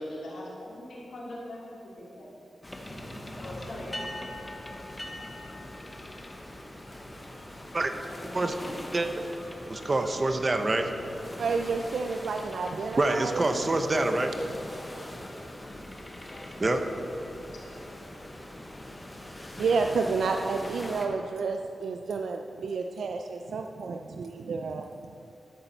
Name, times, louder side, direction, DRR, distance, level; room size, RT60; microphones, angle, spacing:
voice 1, 0.0-2.3 3.4-4.2 8.1-8.7 16.2-16.5 18.2-18.6, left 1 dB, 90° left, -6 dB, 2.5 m, -42 dB
sound 1, 2.6-21.1, left 1 dB, 15° left, 0.8 m, -42 dB
voice 2, 8.9-9.2 9.7-10.9 13.0-14.3 16.6-16.8, right 2 dB, 30° right, 6 dB, 0.6 m, -26 dB
voice 3, 11.4-13.7 19.6-25.1, right 4 dB, 85° right, 4 dB, 0.3 m, -30 dB
12.0 x 6.7 x 4.4 m, 2.9 s
wide cardioid pair, 140°, 0 cm